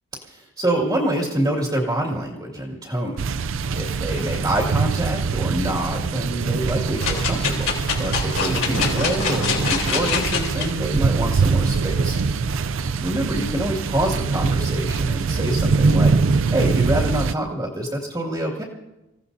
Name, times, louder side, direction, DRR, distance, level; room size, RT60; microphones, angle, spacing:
voice 1, 0.2-7.7 8.0-12.6 13.0-18.6, right 1 dB, 20° right, -3 dB, 2.1 m, -26 dB
sound 1, 3.2-17.3, right 4 dB, 65° right, 0.5 m, -23 dB
sound 2, 7.0-10.7 11.2-11.3, left 6 dB, 70° left, 3.6 m, -25 dB
27.0 x 17.0 x 2.7 m, 1.0 s
head